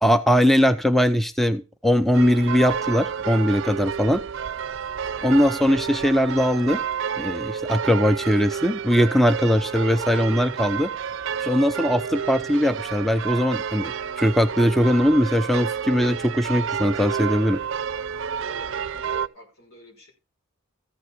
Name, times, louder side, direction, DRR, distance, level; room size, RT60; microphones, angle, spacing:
voice 1, 0.0-4.2 5.2-6.8 7.2-10.9 11.4-17.6, equal, ahead, 0.5 m, -20 dB
Port Sunlight Sunday morning bells, 2.1-19.3, right 7 dB, 60° right, 0.5 m, -30 dB
voice 2, 5.0-5.3 18.5-20.1, left 1 dB, 85° left, 5.2 m, -47 dB
14.0 x 5.4 x 5.9 m
head